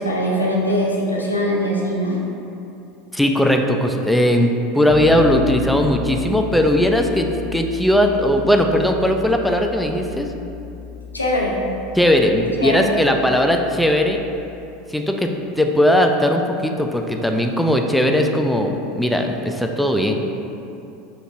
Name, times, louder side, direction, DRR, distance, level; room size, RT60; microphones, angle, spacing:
voice 1, 0.0-2.2 11.1-11.6 12.6-12.9, equal, 85° left, -2 dB, 0.4 m, -21 dB
voice 2, 3.1-10.3 12.0-14.2 14.9-20.2, left 1 dB, 5° left, 4 dB, 0.3 m, -18 dB
Bass guitar, 4.9-14.7, left 4 dB, 15° right, 0.8 m, -33 dB
5.0 x 3.1 x 2.4 m, 2.8 s
figure-of-eight pair, 80°, 0 cm